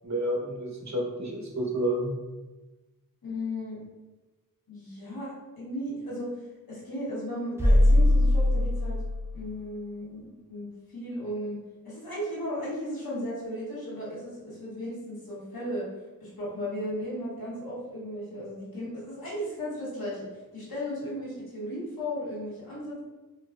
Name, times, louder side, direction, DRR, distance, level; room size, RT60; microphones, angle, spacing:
voice 1, 0.0-2.1, right 1 dB, 50° right, -2 dB, 1.0 m, -30 dB
voice 2, 3.2-3.8 4.7-6.3 6.7-9.0 9.3-11.6 11.8-15.9 16.2-23.0, equal, 90° left, -8 dB, 1.2 m, -35 dB
sound 1, 7.6-9.4, left 1 dB, 5° right, 0.6 m, -21 dB
4.1 x 2.3 x 2.5 m, 1.2 s
wide cardioid pair, 50°, 35 cm